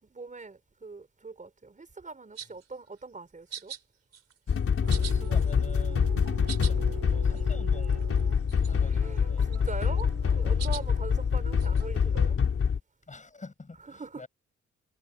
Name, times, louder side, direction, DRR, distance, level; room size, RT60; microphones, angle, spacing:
voice 1, 0.0-3.7 8.8-12.4 13.9-14.3, right 3 dB, 25° right, 5.3 m, -42 dB
sound 1, 2.3-2.7 3.5-3.8 4.1-4.6 4.9-5.9 6.2-6.7 7.1-7.2 7.3-7.4 7.8-8.2 8.5-8.9 9.4-10.0 10.6-10.8 11.6-11.8, right 8 dB, 55° right, 5.0 m, -42 dB
sound 2, 4.5-12.8, left 6 dB, 45° left, 4.1 m, -26 dB
sound 3, 4.8-12.3, right 13 dB, 85° right, 6.2 m, -45 dB
voice 2, 5.0-6.0 6.6-8.0 8.6-9.5 10.6-10.7 13.1-14.3, left 3 dB, 25° left, 7.4 m, -46 dB
cardioid pair, 90°, 30 cm